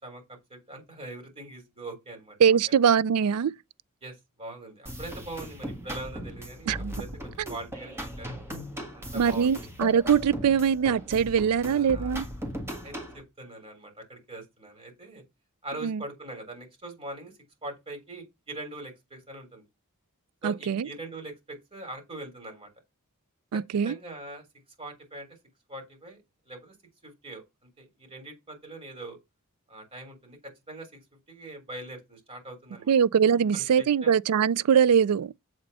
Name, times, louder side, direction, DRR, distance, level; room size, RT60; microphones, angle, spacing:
voice 1, 0.0-2.8 4.0-8.4 8.9-9.7 11.6-12.2 12.8-15.2 15.6-17.3 17.6-19.6 20.4-22.7 23.5-24.4 24.8-25.3 25.7-26.7 27.0-27.4 27.8-29.2 29.7-31.0 31.3-32.9 33.5-34.2, right 2 dB, 25° right, 3.4 m, -42 dB
voice 2, 2.4-3.5 6.7-7.0 9.1-12.3 15.8-16.0 20.4-20.9 23.5-23.9 32.9-35.3, right 7 dB, 90° right, 0.4 m, -22 dB
sound 1, 4.9-13.2, equal, 10° right, 1.7 m, -38 dB
7.9 x 4.2 x 5.3 m
head